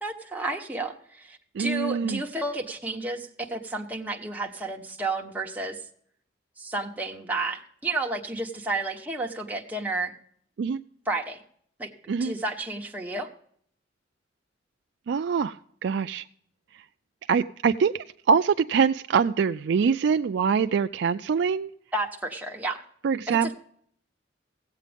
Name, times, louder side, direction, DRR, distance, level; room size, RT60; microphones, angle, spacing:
voice 1, 0.0-5.8 6.6-10.1 11.1-11.4 11.8-13.3 21.9-22.8 23.3-23.5, right 2 dB, 10° right, 1 dB, 1.0 m, -31 dB
voice 2, 1.5-2.2 10.6-10.8 12.1-12.4 15.1-15.6 15.8-16.2 17.3-21.7 23.0-23.5, right 6 dB, 65° right, 9 dB, 0.3 m, -24 dB
16.0 x 8.3 x 3.4 m, 0.63 s
head